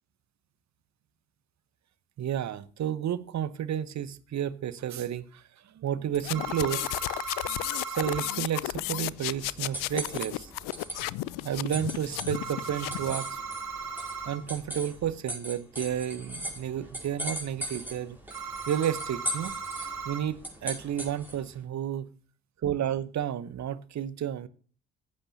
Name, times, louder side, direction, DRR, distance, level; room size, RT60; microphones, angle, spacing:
voice 1, 2.2-6.8 7.9-10.5 11.4-13.4 14.2-18.2 18.7-19.6 20.0-22.1 22.6-24.5, right 10 dB, 45° right, 1.0 m, -31 dB
sound 1, 6.1-13.2, left 19 dB, 60° left, 0.5 m, -34 dB
sound 2, 6.3-8.4 12.3-14.4 18.3-20.2, right 5 dB, 65° right, 3.3 m, -37 dB
sound 3, 8.7-21.5, equal, 5° right, 5.2 m, -40 dB
15.0 x 8.5 x 2.7 m
hypercardioid pair, 45°, 37 cm